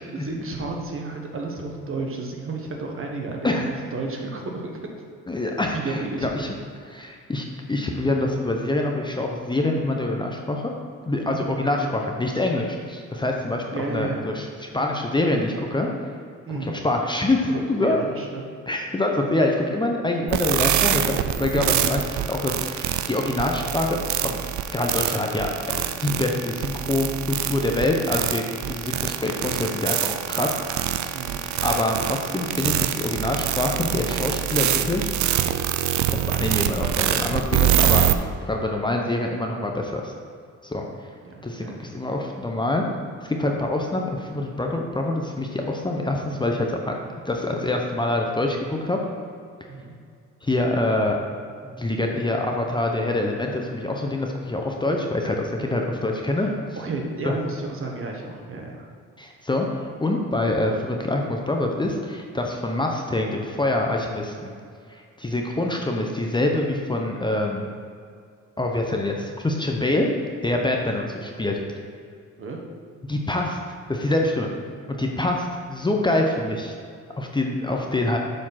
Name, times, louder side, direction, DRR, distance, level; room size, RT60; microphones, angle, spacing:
voice 1, 0.1-4.8 5.7-6.3 11.3-11.5 13.7-14.2 16.5-16.7 17.5-18.4 31.1-31.4 41.2-41.8 49.7-49.9 56.4-56.5 56.8-58.9 72.4-72.6, right 3 dB, 45° right, 1 dB, 1.4 m, -32 dB
voice 2, 5.3-6.5 6.8-10.7 11.0-13.6 13.9-15.9 16.5-18.0 18.7-24.0 24.2-24.4 24.7-31.1 31.6-35.1 36.1-40.1 40.6-40.8 41.4-42.9 43.2-46.9 47.2-49.0 50.4-51.2 51.6-56.5 57.2-57.3 59.2-59.7 60.0-64.5 64.9-67.7 68.6-70.1 70.4-71.6 73.1-73.6 73.9-74.5 74.9-76.7 77.2-78.2, left 2 dB, 15° left, 1 dB, 0.8 m, -25 dB
sound 1, 20.3-38.1, right 11 dB, 70° right, 0.5 m, -25 dB
7.3 x 4.4 x 5.8 m, 2.3 s
cardioid pair, 90°, 30 cm